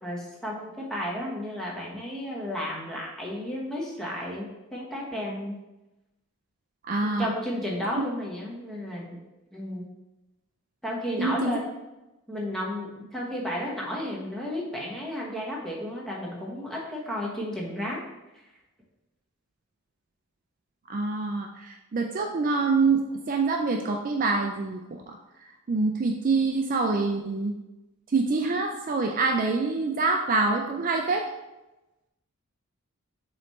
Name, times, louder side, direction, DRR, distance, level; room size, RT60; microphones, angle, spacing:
voice 1, 0.0-5.6 7.0-9.2 9.5-9.9 10.8-11.6 12.3-18.0, equal, ahead, -4 dB, 1.2 m, -33 dB
voice 2, 6.8-7.3 11.2-11.6 20.9-25.2 25.7-27.5 28.1-31.2, right 3 dB, 35° right, 3 dB, 0.4 m, -26 dB
7.1 x 3.2 x 4.2 m, 1.0 s
head